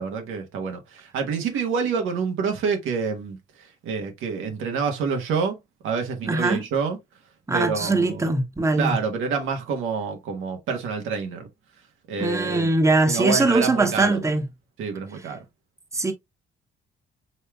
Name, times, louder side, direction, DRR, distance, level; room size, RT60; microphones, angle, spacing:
voice 1, 0.0-3.4 3.8-5.6 5.8-7.0 7.5-8.3 8.7-11.5 12.1-12.7 13.1-14.2 14.8-15.4, right 5 dB, 85° right, 1.1 m, -27 dB
voice 2, 6.2-6.7 7.5-9.0 12.2-14.5 15.9-16.1, right 2 dB, 15° right, 1.0 m, -21 dB
5.4 x 3.4 x 2.2 m
cardioid pair, 90°, 20 cm